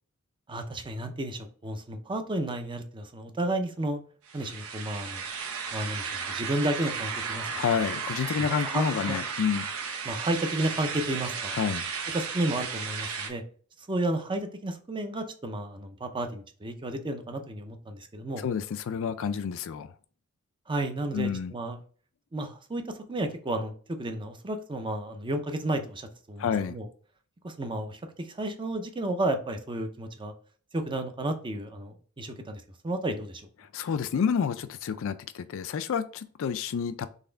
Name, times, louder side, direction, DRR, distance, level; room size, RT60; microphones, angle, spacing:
voice 1, 0.5-4.0 4.3-5.3 5.7-7.5 8.4-9.2 10.0-11.6 12.1-13.4 13.8-18.4 20.7-21.8 22.3-26.9 27.4-30.3 30.7-33.4, right 1 dB, 20° right, 6 dB, 0.6 m, -32 dB
sound 1, 4.3-13.3, right 5 dB, 75° right, 0.8 m, -34 dB
voice 2, 7.5-9.7 11.5-11.8 18.4-19.9 21.1-21.5 26.4-26.7 33.7-37.1, left 7 dB, 65° left, 12 dB, 0.4 m, -29 dB
4.1 x 3.3 x 3.8 m, 0.43 s
head